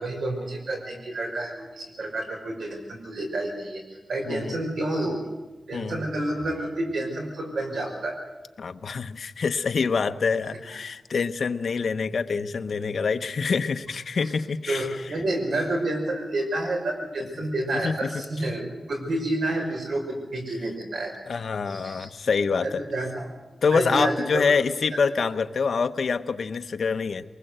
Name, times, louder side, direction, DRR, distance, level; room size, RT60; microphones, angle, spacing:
voice 1, 0.0-3.8 4.1-5.2 5.7-8.2 14.7-21.1 21.7-22.1 22.6-23.2 23.7-24.4, right 1 dB, 85° right, 2 dB, 5.2 m, -29 dB
voice 2, 4.3-4.6 5.7-6.0 8.6-15.1 17.7-18.1 21.3-22.8 23.6-27.2, left 5 dB, 70° left, 8 dB, 0.9 m, -26 dB
23.5 x 20.0 x 8.0 m, 1.1 s
wide cardioid pair, 120°, 0 cm